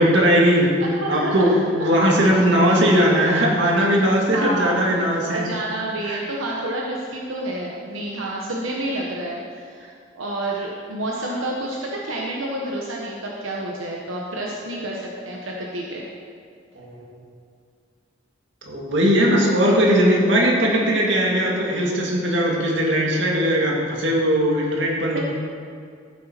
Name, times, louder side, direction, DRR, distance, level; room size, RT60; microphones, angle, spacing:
voice 1, 0.0-0.7 1.1-5.4 6.1-6.2 16.8-17.1 18.7-25.2, equal, 65° right, -2 dB, 2.1 m, -19 dB
voice 2, 0.8-1.6 2.2-2.3 4.3-4.8 5.3-16.1 25.1-25.2, right 1 dB, 90° right, -2 dB, 1.2 m, -29 dB
14.0 x 8.0 x 4.5 m, 2.2 s
head